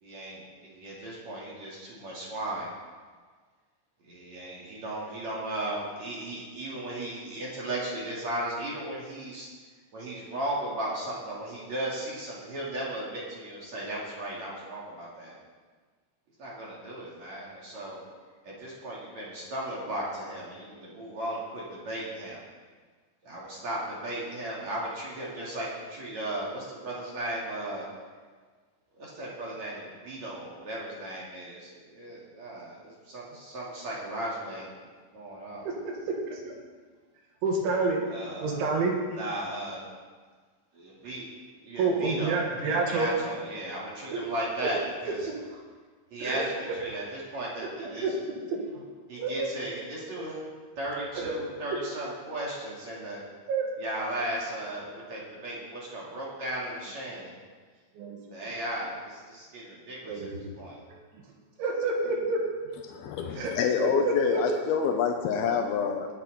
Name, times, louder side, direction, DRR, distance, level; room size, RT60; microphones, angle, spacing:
voice 1, 0.0-2.7 4.0-9.5 9.9-15.4 16.4-18.0 18.4-22.4 23.2-27.9 29.0-34.7 35.1-35.7 38.0-38.7 39.1-39.8 40.7-41.3 41.6-45.3 46.1-48.1 49.1-50.4 50.8-53.2 53.8-57.4 58.2-60.8 63.1-63.5, right 1 dB, 40° right, -5 dB, 3.1 m, -36 dB
voice 2, 37.4-38.0 38.4-38.9 41.8-43.1 44.1-44.3 44.6-44.7 45.3-45.4 46.2-46.4 47.8-48.8 49.2-49.5 50.2-50.3 51.2-51.3 53.5-53.7 58.0-58.2 60.0-60.5 61.6-62.4 63.4-64.4, right 3 dB, 70° right, 0 dB, 4.0 m, -29 dB
voice 3, 62.8-66.1, left 6 dB, 85° left, 3 dB, 2.1 m, -27 dB
19.0 x 9.2 x 4.3 m, 1.5 s
omnidirectional pair, 5.7 m